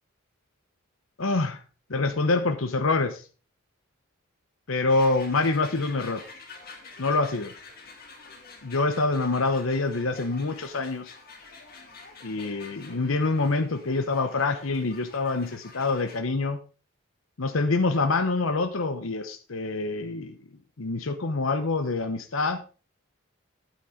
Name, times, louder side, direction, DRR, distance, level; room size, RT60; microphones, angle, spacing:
voice 1, 1.2-1.6 1.9-3.2 4.7-6.2 7.0-7.5 8.6-11.2 12.2-16.6 17.4-20.4 20.8-22.6, left 3 dB, 75° left, 9 dB, 0.9 m, -26 dB
sound 1, 4.9-16.2, left 4 dB, 45° left, 2.5 m, -47 dB
11.5 x 9.1 x 3.8 m, 0.35 s
head